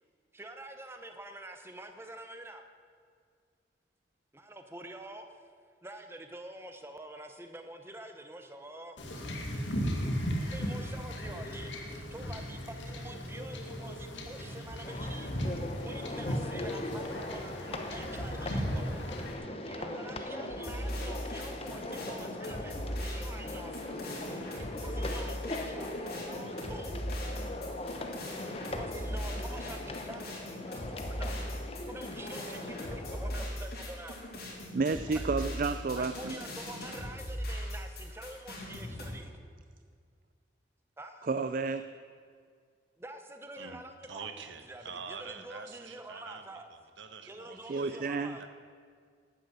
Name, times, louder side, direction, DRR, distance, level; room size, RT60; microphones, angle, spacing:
voice 1, 0.3-2.6 4.3-5.3 5.8-9.0 10.4-19.0 19.7-23.8 24.2-27.1 28.2-34.2 35.1-35.3 35.9-39.3 41.0-41.3 43.0-44.3 44.6-46.7 47.3-48.5, right 1 dB, 15° right, 6 dB, 0.8 m, -47 dB
Wind / Ocean / Boat Water vehicle, 9.0-19.3, equal, 80° left, 2.0 m, -36 dB
sound 1, 14.8-33.5, left 1 dB, 30° left, 0.9 m, -40 dB
sound 2, 20.5-39.1, equal, 55° left, 3.3 m, -39 dB
voice 2, 34.7-36.3 41.3-41.9 47.7-48.4, right 4 dB, 45° right, 10 dB, 0.4 m, -31 dB
voice 3, 44.1-47.9 48.4-48.5, right 5 dB, 75° right, 8 dB, 1.1 m, -46 dB
12.0 x 9.3 x 7.8 m, 2.1 s
head